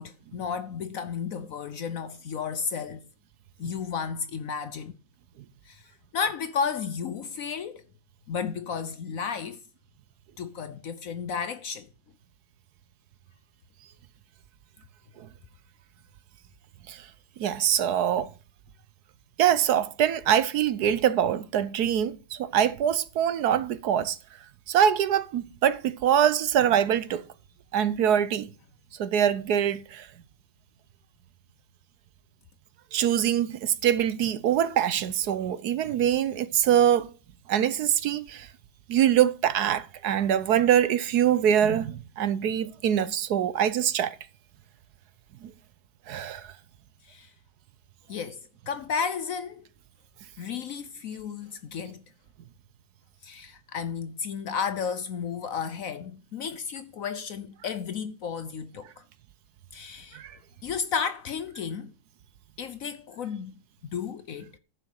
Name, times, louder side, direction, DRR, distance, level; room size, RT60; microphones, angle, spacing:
voice 1, 0.0-3.0 3.6-4.9 5.7-7.8 8.3-9.6 10.4-11.9 47.0-47.3 48.1-49.6 50.4-52.0 53.2-59.0 59.7-60.2 60.6-61.9 62.6-63.5 63.9-64.5, left 6 dB, 65° left, 0.9 m, -33 dB
voice 2, 17.4-18.3 19.4-24.2 24.7-27.2 27.7-28.5 29.0-30.1 32.9-37.1 37.5-38.5 38.9-44.2 45.4-45.5 46.1-46.5 60.1-60.4, right 9 dB, 65° right, 1.1 m, -24 dB
10.5 x 6.7 x 6.3 m
omnidirectional pair, 1.9 m